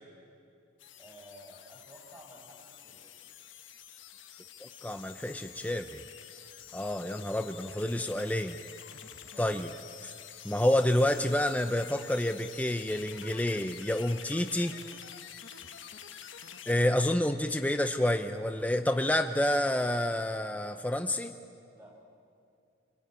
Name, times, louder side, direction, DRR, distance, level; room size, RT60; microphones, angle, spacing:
sound 1, 0.8-16.7, left 9 dB, 75° left, 1.4 m, -48 dB
voice 1, 1.0-3.1 9.3-9.5 9.9-10.1 16.6-16.8 21.7-22.1, equal, 10° right, -1 dB, 5.6 m, -53 dB
voice 2, 4.6-6.0 6.7-8.6 9.4-9.7 10.4-14.7 16.7-21.4, left 1 dB, 10° left, 7 dB, 0.6 m, -29 dB
25.5 x 23.5 x 9.0 m, 2.5 s
head